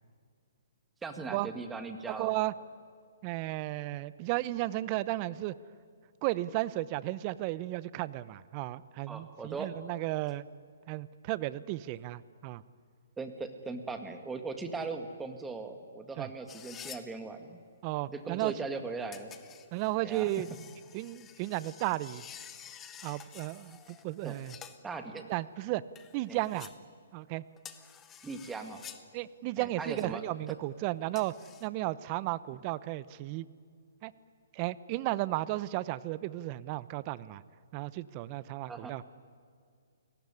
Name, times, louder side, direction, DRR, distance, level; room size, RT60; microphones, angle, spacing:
voice 1, 1.0-2.3 9.1-9.8 13.2-17.6 18.1-19.3 20.0-20.3 24.2-24.4 24.8-25.2 26.3-26.4 28.2-28.8 29.6-30.2 38.7-39.0, right 4 dB, 10° right, 7 dB, 2.0 m, -39 dB
voice 2, 2.1-2.5 3.2-5.5 6.2-10.5 10.9-12.6 16.2-16.3 17.8-18.5 19.7-20.5 20.9-22.2 23.0-24.6 25.3-25.8 26.1-26.7 27.1-27.4 29.1-31.3 31.6-33.5 34.0-34.1 34.5-37.4 37.7-39.0, right 17 dB, 35° right, 18 dB, 0.8 m, -34 dB
sound 1, 16.5-17.1 19.1-24.8 26.0-26.8 27.6-29.1 31.2-31.7, left 9 dB, 15° left, 1.3 m, -50 dB
28.5 x 19.0 x 9.8 m, 2.1 s
hypercardioid pair, 140°, 0 cm